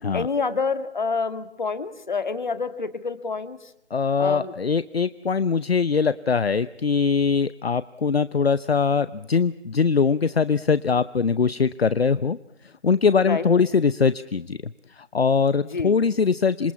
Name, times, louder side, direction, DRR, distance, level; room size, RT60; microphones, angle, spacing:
voice 1, 0.1-3.6 4.2-4.5 13.3-13.5 15.6-15.9, left 4 dB, 45° left, 11 dB, 2.0 m, -27 dB
voice 2, 3.9-12.4 12.6-14.6 14.9-16.7, left 5 dB, 60° left, 16 dB, 0.9 m, -22 dB
27.5 x 23.0 x 7.2 m, 0.80 s
figure-of-eight pair, 165°, 34 cm